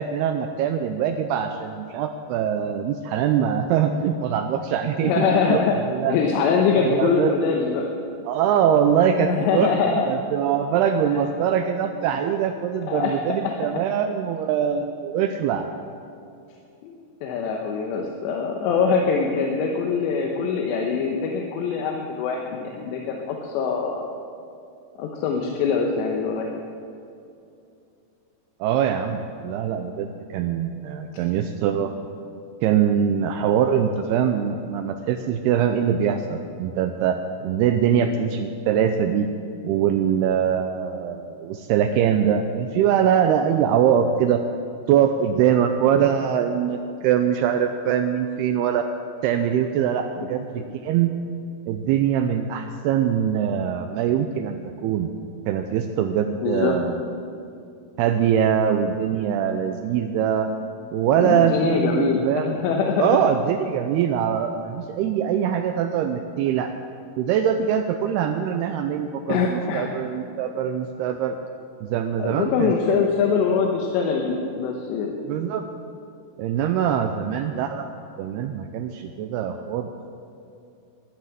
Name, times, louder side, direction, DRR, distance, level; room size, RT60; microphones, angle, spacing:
voice 1, 0.0-6.2 6.8-7.3 8.3-9.8 10.1-15.7 28.6-31.9 32.6-39.3 39.6-44.4 44.9-48.9 49.2-51.1 51.7-55.1 55.5-57.0 58.0-60.5 60.9-62.6 63.0-66.7 67.2-71.4 71.8-72.7 73.0-73.1 75.3-75.7 76.4-77.9 78.2-79.9, right 8 dB, 85° right, 6 dB, 2.3 m, -23 dB
voice 2, 5.0-5.8 6.1-7.9 9.2-10.1 11.1-11.2 12.9-13.6 16.8-16.9 17.2-24.0 25.0-26.6 37.9-38.1 56.4-56.7 61.2-63.2 69.3-69.9 72.2-75.1, left 5 dB, 80° left, 1 dB, 3.1 m, -23 dB
11.5 x 11.5 x 7.5 m, 2.6 s
omnidirectional pair, 5.2 m